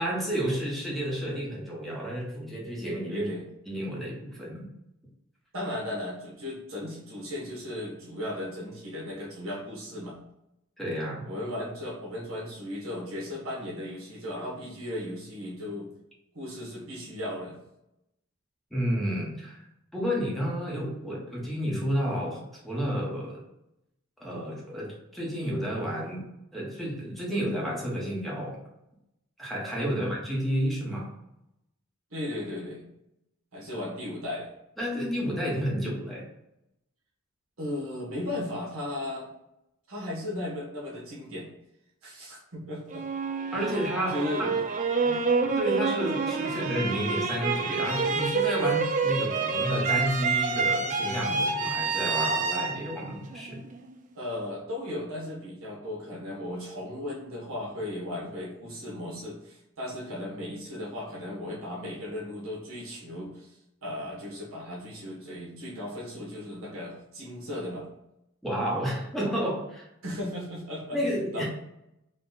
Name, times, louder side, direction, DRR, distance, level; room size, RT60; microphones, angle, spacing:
voice 1, 0.0-3.3 3.7-4.7 10.8-11.3 18.7-19.6 19.9-23.4 24.2-28.6 29.4-31.1 34.8-36.3 43.5-44.5 45.4-53.6 68.4-69.9 70.9-71.5, equal, ahead, -4 dB, 1.0 m, -31 dB
voice 2, 3.1-3.4 5.5-10.2 11.2-15.9 16.3-17.6 29.8-30.2 32.1-32.8 33.5-34.5 37.6-39.3 39.9-41.5 42.0-43.0 44.1-44.6 45.0-45.2 46.4-46.6 54.1-67.9 70.0-71.5, left 1 dB, 75° right, -3 dB, 1.4 m, -36 dB
sound 1, 42.9-53.9, right 4 dB, 35° right, 0.3 m, -28 dB
4.0 x 2.4 x 3.9 m, 0.83 s
head